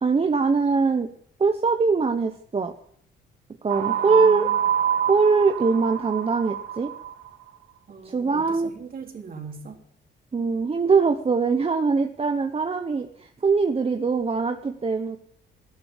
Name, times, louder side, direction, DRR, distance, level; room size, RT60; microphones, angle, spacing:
voice 1, 0.0-1.1 1.4-2.7 3.6-4.5 5.1-6.9 8.0-8.7 10.3-15.2, right 4 dB, 30° right, 6 dB, 1.1 m, -22 dB
sound 1, 3.7-7.3, right 10 dB, 75° right, 2.0 m, -26 dB
voice 2, 3.8-4.6 7.9-9.8, right 5 dB, 45° right, 2 dB, 3.5 m, -40 dB
14.0 x 12.0 x 7.4 m, 0.64 s
cardioid pair, 90°, 20 cm